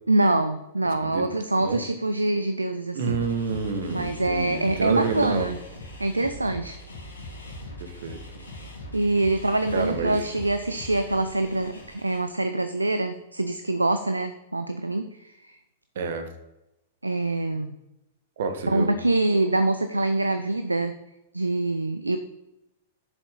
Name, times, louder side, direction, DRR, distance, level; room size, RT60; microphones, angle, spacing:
voice 1, 0.1-3.2 3.9-5.6 6.0-6.8 8.9-15.6 17.0-17.7 18.7-20.9 21.3-22.2, right 2 dB, 90° right, 9 dB, 0.6 m, -25 dB
voice 2, 2.9-5.5 7.8-8.2 9.7-10.3 15.9-16.3 18.4-18.9, right 4 dB, 60° right, 7 dB, 1.5 m, -28 dB
sound 1, 3.0-12.2, left 1 dB, 85° left, 2.6 m, -41 dB
11.0 x 7.1 x 3.8 m, 0.91 s
figure-of-eight pair, 100°, 0 cm